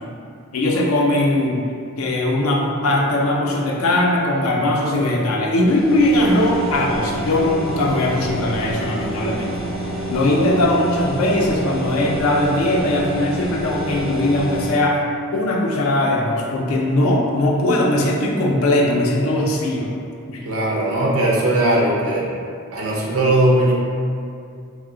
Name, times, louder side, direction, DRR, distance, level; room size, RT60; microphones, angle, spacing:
voice 1, 0.5-1.6 2.0-9.7 10.1-15.0 15.3-20.0 20.3-20.4, left 1 dB, 80° left, -1 dB, 0.4 m, -19 dB
sound 1, 5.6-14.7, equal, ahead, 0.4 m, -28 dB
voice 2, 20.4-22.3 22.7-23.7, right 1 dB, 80° right, -3 dB, 0.5 m, -18 dB
2.7 x 2.0 x 3.6 m, 2.4 s
head